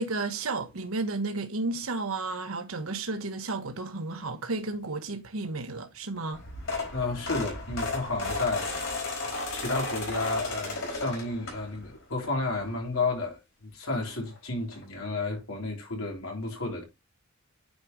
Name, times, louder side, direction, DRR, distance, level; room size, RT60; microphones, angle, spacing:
voice 1, 0.0-6.4, right 3 dB, 90° right, 1.1 m, -32 dB
sound 1, 6.3-12.0 12.4-12.7 13.9-14.0 14.2-14.4 14.7-14.8, left 3 dB, 65° left, 4.3 m, -34 dB
voice 2, 6.9-8.9 9.5-16.8, left 3 dB, 85° left, 3.6 m, -32 dB
9.4 x 5.1 x 3.0 m
head